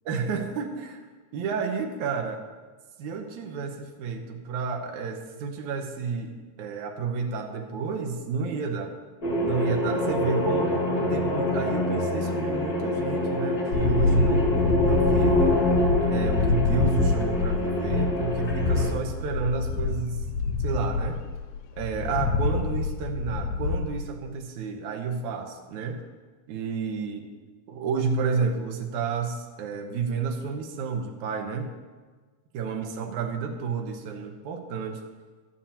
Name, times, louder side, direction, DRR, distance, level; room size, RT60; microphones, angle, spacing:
voice 1, 0.1-1.0 1.3-2.4 3.0-8.9 9.4-10.7 11.1-15.6 16.1-20.2 20.6-21.2 21.8-26.0 26.5-27.3 27.7-31.7 32.5-35.0, right 5 dB, 70° right, 3 dB, 2.4 m, -30 dB
sound 1, 9.2-18.9, left 1 dB, 35° left, 1.6 m, -26 dB
sound 2, 13.7-23.9, left 4 dB, 90° left, 2.4 m, -27 dB
16.5 x 11.5 x 2.9 m, 1.4 s
omnidirectional pair, 3.8 m